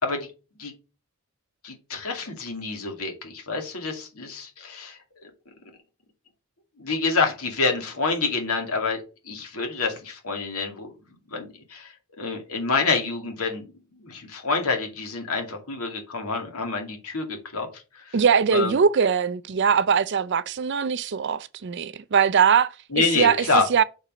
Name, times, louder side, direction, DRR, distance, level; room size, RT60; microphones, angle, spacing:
voice 1, 1.6-5.3 6.8-10.9 11.3-18.2 18.5-18.8 22.9-23.7, left 4 dB, 85° left, 2.4 m, -27 dB
voice 2, 18.1-23.4 23.7-23.8, right 6 dB, 55° right, 0.5 m, -21 dB
6.6 x 4.2 x 4.9 m
head